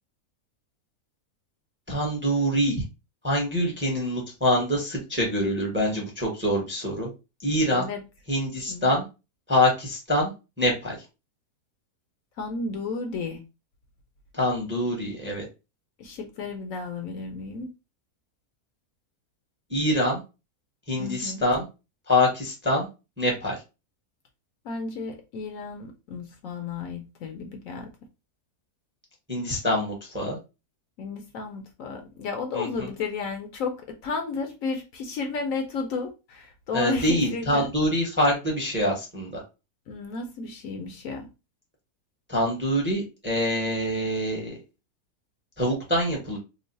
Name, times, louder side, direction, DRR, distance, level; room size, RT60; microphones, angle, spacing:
voice 1, 1.9-2.8 3.2-7.1 7.4-7.9 8.3-9.0 9.5-10.3 10.6-11.0 14.3-15.4 19.7-20.2 20.9-21.6 22.1-22.9 23.2-23.6 29.3-30.4 32.5-32.9 36.7-39.4 42.3-44.6 45.6-46.4, left 1 dB, 10° right, 0.7 m, -25 dB
voice 2, 7.7-8.0 8.7-8.9 12.4-13.4 16.0-17.7 21.0-21.4 24.6-27.9 31.0-33.8 34.0-37.7 39.9-41.3, left 4 dB, 70° left, 1.0 m, -33 dB
3.0 x 2.0 x 3.9 m
omnidirectional pair, 1.6 m